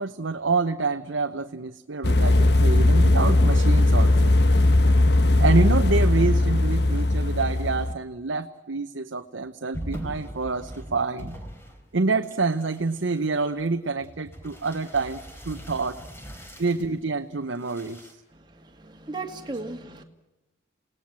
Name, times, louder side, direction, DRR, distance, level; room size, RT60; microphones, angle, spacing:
voice 1, 0.0-4.3 5.4-11.4 11.9-15.2 15.4-16.0 16.6-18.1, right 3 dB, 80° right, 6 dB, 0.9 m, -27 dB
sound 1, 2.0-7.9, left 2 dB, 55° left, 1.1 m, -19 dB
sound 2, 9.7-11.9 12.2-16.9 17.5-18.1, equal, 10° left, 3.5 m, -41 dB
voice 2, 18.3-20.0, right 3 dB, 25° right, 4 dB, 2.0 m, -37 dB
28.5 x 19.0 x 7.4 m, 1.0 s
head